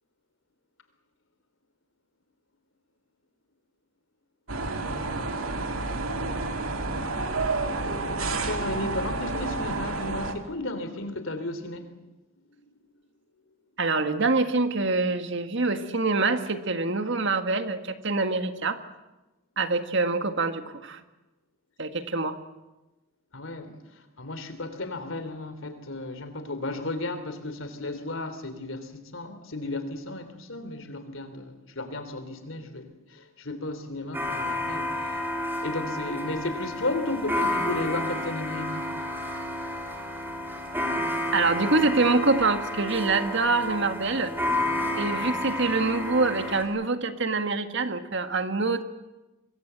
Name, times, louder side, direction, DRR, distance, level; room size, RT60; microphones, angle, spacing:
sound 1, 4.5-10.3, right 3 dB, 80° right, 2.3 m, -30 dB
voice 1, 8.4-11.9 12.4-12.5 23.3-23.8 24.2-35.2 35.6-39.0, left 2 dB, 70° left, 10 dB, 3.3 m, -34 dB
voice 2, 13.8-18.8 19.6-21.0 21.8-22.4 41.3-44.3 45.0-48.8, right 3 dB, 55° right, 8 dB, 1.8 m, -25 dB
sound 2, 34.1-46.6, left 1 dB, 10° right, 3.9 m, -31 dB
25.5 x 21.5 x 8.1 m, 1.1 s
head